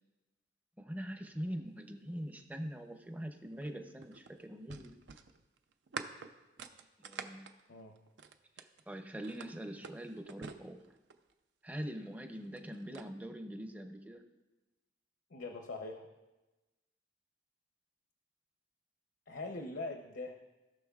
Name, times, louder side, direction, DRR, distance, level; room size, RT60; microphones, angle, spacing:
voice 1, 0.8-4.9 7.0-7.5 8.6-10.8 11.6-14.2, equal, 10° right, 6 dB, 0.6 m, -43 dB
sound 1, 3.5-8.8 9.2-11.3 12.3-13.1, right 5 dB, 75° right, 0.5 m, -47 dB
voice 2, 15.3-16.1 19.3-20.4, left 2 dB, 70° left, 4 dB, 0.7 m, -42 dB
17.0 x 6.0 x 2.4 m, 1.1 s
head